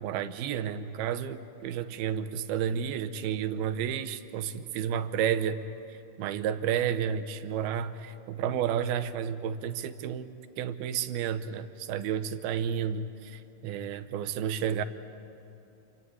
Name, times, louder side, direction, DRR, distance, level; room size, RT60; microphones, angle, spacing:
voice 1, 0.0-5.6 5.9-14.8, right 8 dB, 80° right, 11 dB, 2.8 m, -31 dB
27.5 x 24.5 x 8.7 m, 2.8 s
omnidirectional pair, 4.4 m